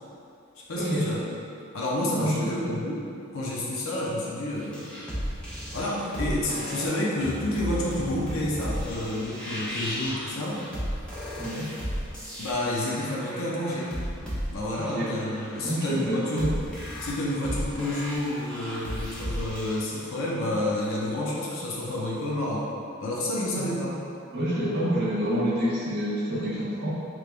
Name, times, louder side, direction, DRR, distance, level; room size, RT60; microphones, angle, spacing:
voice 1, 0.7-1.3 1.7-3.0 3.3-5.0 5.7-10.6 12.4-13.9 14.5-16.5 17.0-22.6 23.0-23.9, left 1 dB, 70° left, -5 dB, 0.6 m, -29 dB
voice 2, 2.2-2.8 11.4-11.6 14.8-15.2 15.5-16.5 23.5-23.7 24.3-26.9, equal, 55° right, -7 dB, 0.9 m, -28 dB
sound 1, 4.6-19.8, equal, 5° left, 0.6 m, -35 dB
3.4 x 3.2 x 2.4 m, 2.5 s
head